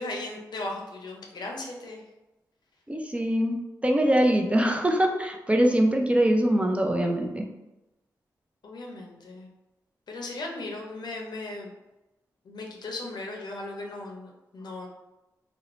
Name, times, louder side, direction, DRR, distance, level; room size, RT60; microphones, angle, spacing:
voice 1, 0.0-2.0 8.6-9.5 10.1-11.7 12.4-14.9, left 2 dB, 70° left, 0 dB, 0.6 m, -37 dB
voice 2, 2.9-7.5, right 1 dB, 15° right, 2 dB, 0.4 m, -23 dB
2.5 x 2.0 x 2.9 m, 1.0 s
cardioid pair, 50°, 8 cm